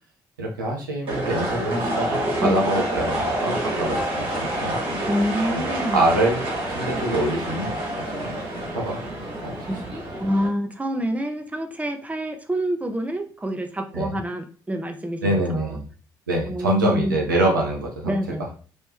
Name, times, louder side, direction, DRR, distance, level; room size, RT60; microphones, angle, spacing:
voice 1, 0.4-4.8 5.5-6.4 6.7-7.8 8.1-8.3 8.7-9.0 9.4-9.5 13.9-14.2 15.2-15.8 16.3-18.1, right 1 dB, 90° right, -1 dB, 0.7 m, -25 dB
sound 1, 1.1-10.5, right 1 dB, 60° right, 1.5 m, -28 dB
voice 2, 5.1-6.1 9.7-9.8 10.2-15.8 16.5-17.2 18.1-18.5, equal, 15° right, 6 dB, 0.7 m, -27 dB
3.1 x 3.0 x 3.5 m, 0.39 s
figure-of-eight pair, 45°, 10 cm